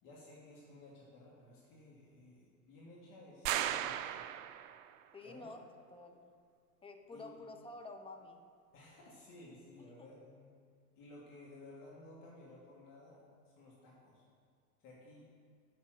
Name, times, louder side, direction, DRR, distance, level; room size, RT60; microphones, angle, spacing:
voice 1, 0.0-4.3 5.2-5.5 7.1-7.4 8.7-10.5 11.0-14.2 14.8-15.3, left 1 dB, 45° left, -5 dB, 2.2 m, -56 dB
sound 1, 3.5-4.9, right 11 dB, 60° right, 0.6 m, -36 dB
voice 2, 5.1-5.6 5.9-6.3 6.8-8.4 10.0-10.1, left 2 dB, 10° left, 4 dB, 1.0 m, -50 dB
7.6 x 6.4 x 7.9 m, 2.1 s
figure-of-eight pair, 85°, 46 cm